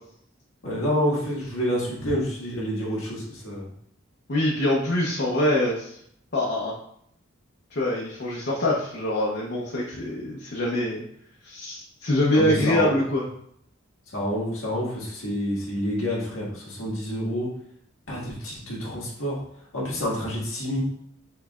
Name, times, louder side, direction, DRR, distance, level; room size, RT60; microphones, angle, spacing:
voice 1, 0.6-3.7 12.3-13.0 14.1-17.5 18.1-19.4 19.7-20.8, equal, 85° left, -5 dB, 1.7 m, -28 dB
voice 2, 4.3-6.0 6.3-6.7 7.7-11.0 11.4-13.3, left 1 dB, 55° left, -4 dB, 0.8 m, -24 dB
5.7 x 3.2 x 2.4 m, 0.69 s
head